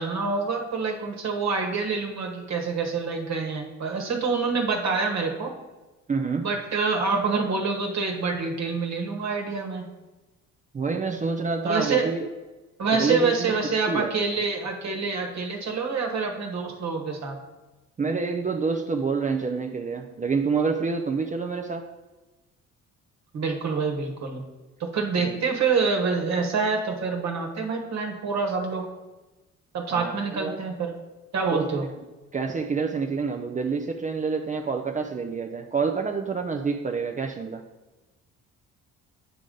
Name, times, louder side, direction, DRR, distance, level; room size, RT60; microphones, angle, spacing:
voice 1, 0.0-5.5 6.4-9.8 11.6-12.1 12.8-17.4 23.3-24.4 24.8-28.9 29.7-30.9 31.3-31.8, right 4 dB, 60° right, 2 dB, 1.3 m, -26 dB
voice 2, 6.1-6.5 10.7-12.3 12.9-13.5 13.9-14.1 18.0-21.8 25.2-25.4 29.9-30.6 31.5-31.8 32.3-37.6, right 4 dB, 25° right, 3 dB, 0.5 m, -27 dB
9.2 x 5.0 x 3.8 m, 1.1 s
cardioid pair, 90°, 30 cm